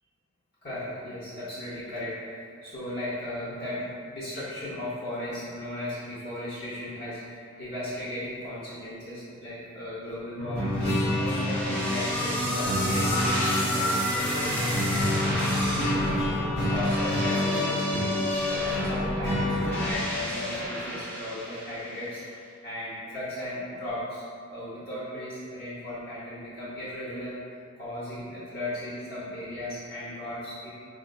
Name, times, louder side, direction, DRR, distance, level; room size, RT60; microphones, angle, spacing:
voice 1, 0.6-18.1 18.5-30.7, left 1 dB, 45° left, -11 dB, 0.7 m, -36 dB
sound 1, 10.4-19.9, left 1 dB, 85° left, 1.4 m, -28 dB
sound 2, 10.8-22.1, left 1 dB, 10° left, 0.5 m, -31 dB
4.0 x 3.7 x 2.2 m, 2.3 s
head